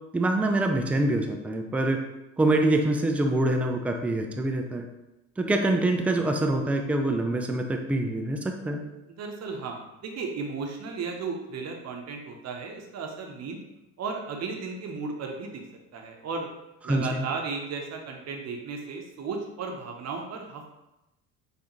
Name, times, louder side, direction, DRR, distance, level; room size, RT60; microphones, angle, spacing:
voice 1, 0.1-2.0 2.4-4.9 5.4-8.8 16.9-17.2, right 2 dB, 5° right, 4 dB, 0.3 m, -25 dB
voice 2, 9.2-13.6 14.0-15.6 15.9-16.5 16.8-20.7, right 4 dB, 40° right, 2 dB, 0.9 m, -35 dB
4.6 x 2.5 x 3.0 m, 0.94 s
hypercardioid pair, 65°, 40 cm